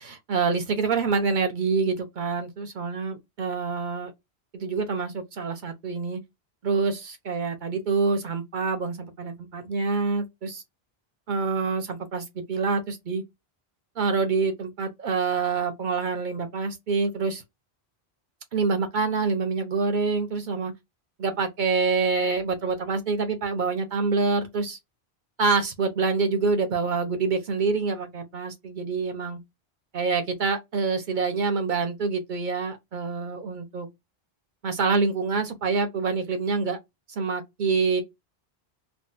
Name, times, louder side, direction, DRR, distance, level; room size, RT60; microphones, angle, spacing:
voice 1, 0.0-4.1 4.5-6.2 6.6-10.6 11.3-13.2 14.0-17.4 18.5-20.7 21.2-24.8 25.4-29.4 29.9-33.9 34.6-36.8 37.2-38.0, right 4 dB, 50° right, 0.9 m, -26 dB
3.8 x 2.3 x 2.6 m
omnidirectional pair, 1.1 m